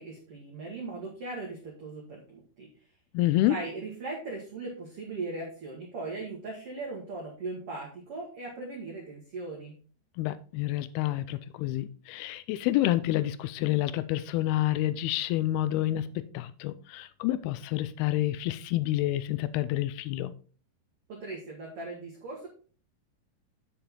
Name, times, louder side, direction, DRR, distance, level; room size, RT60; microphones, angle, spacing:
voice 1, 0.0-2.7 3.5-9.8 21.1-22.5, right 3 dB, 50° right, 1.8 m, -39 dB
voice 2, 3.1-3.6 10.2-20.3, left 15 dB, 80° left, 2.4 m, -28 dB
7.5 x 7.0 x 3.7 m
omnidirectional pair, 4.7 m